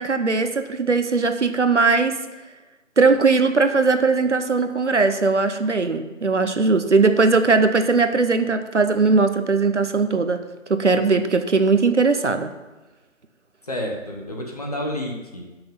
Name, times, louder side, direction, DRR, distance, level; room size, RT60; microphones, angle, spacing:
voice 1, 0.0-2.2 3.0-10.4 10.7-12.5, right 4 dB, 60° right, 9 dB, 0.9 m, -19 dB
voice 2, 13.6-15.6, left 1 dB, 30° left, 1 dB, 1.3 m, -30 dB
12.5 x 6.1 x 5.6 m, 1.2 s
figure-of-eight pair, 165°, 40 cm